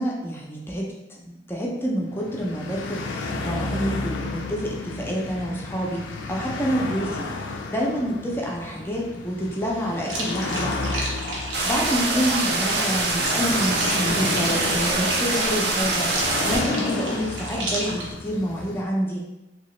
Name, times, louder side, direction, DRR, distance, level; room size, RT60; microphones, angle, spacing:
voice 1, 0.0-6.0 6.3-10.7 11.6-19.2, equal, 10° left, -2 dB, 0.5 m, -28 dB
sound 1, 2.0-18.8, left 3 dB, 80° left, 0.4 m, -32 dB
sound 2, 10.1-18.1, right 1 dB, 85° right, 0.8 m, -32 dB
sound 3, 11.5-16.6, right 2 dB, 60° right, 0.5 m, -24 dB
2.9 x 2.8 x 3.1 m, 0.99 s
head